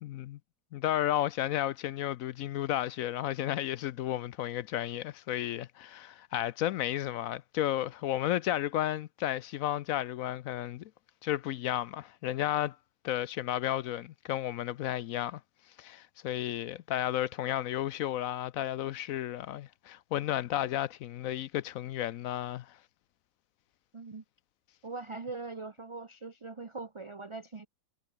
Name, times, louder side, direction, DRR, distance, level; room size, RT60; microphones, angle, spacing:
voice 1, 0.0-0.4 0.7-10.9 11.2-12.8 13.0-15.4 15.8-22.8, left 12 dB, 70° left, 0.8 m, -33 dB
voice 2, 23.9-24.2 24.8-27.7, right 3 dB, 35° right, 0.5 m, -41 dB
omnidirectional pair, 1.8 m